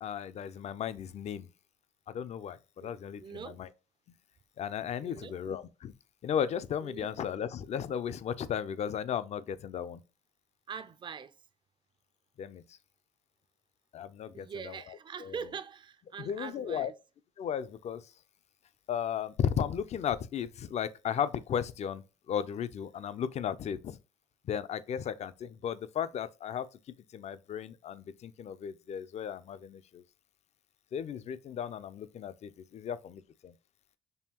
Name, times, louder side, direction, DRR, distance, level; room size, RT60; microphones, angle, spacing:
voice 1, 0.0-1.5 2.1-3.7 4.6-5.9 6.2-10.0 12.4-12.8 13.9-14.8 15.3-15.4 16.2-16.9 17.4-18.1 18.9-24.0 24.4-26.7 27.1-30.0 30.9-33.5, left 8 dB, 40° left, 0.4 m, -35 dB
voice 2, 2.8-3.6 5.0-5.3 6.8-7.1 10.7-11.4 14.3-16.9, right 6 dB, 30° right, 0.4 m, -43 dB
5.5 x 2.2 x 2.9 m
cardioid pair, 110°, 17 cm